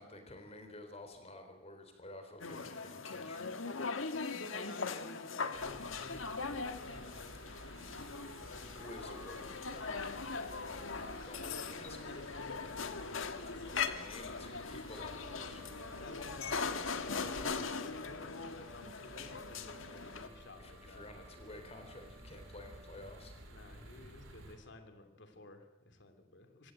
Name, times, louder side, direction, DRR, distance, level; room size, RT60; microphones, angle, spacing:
voice 1, 0.0-3.5 8.7-10.4 11.1-12.1 13.7-15.6 20.6-23.3, left 1 dB, 30° left, 6 dB, 4.0 m, -51 dB
sound 1, 2.4-20.3, left 4 dB, 75° left, 1.6 m, -40 dB
voice 2, 4.3-7.8 10.9-13.7 16.0-21.0 23.5-26.7, left 2 dB, 60° left, 7 dB, 2.9 m, -53 dB
sound 2, 5.5-24.6, right 1 dB, 75° right, 5.4 m, -54 dB
sound 3, 14.9-23.0, left 2 dB, 10° right, 1.2 m, -58 dB
26.0 x 15.5 x 9.0 m, 1.0 s
head